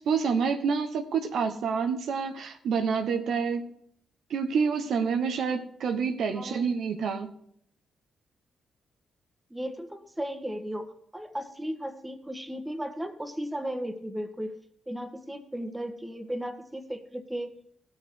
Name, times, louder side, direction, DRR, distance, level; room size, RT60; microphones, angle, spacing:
voice 1, 0.0-3.7 4.3-7.3, right 6 dB, 75° right, 6 dB, 1.0 m, -28 dB
voice 2, 9.5-14.6 14.9-17.6, equal, 15° right, 7 dB, 1.5 m, -35 dB
16.5 x 6.5 x 4.7 m, 0.70 s
supercardioid pair, 55°, 0 cm